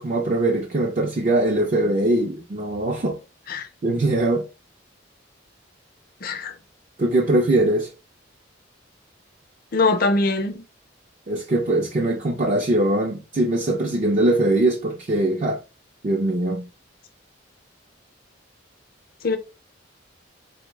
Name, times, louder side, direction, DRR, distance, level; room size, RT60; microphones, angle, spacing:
voice 1, 0.0-3.2 3.5-4.5 7.0-7.9 11.3-15.6 16.0-16.7, right 1 dB, 40° right, 0.4 m, -21 dB
voice 2, 6.2-6.5 9.7-10.6 19.2-19.4, left 3 dB, 50° left, 0.5 m, -22 dB
3.9 x 2.0 x 3.2 m
head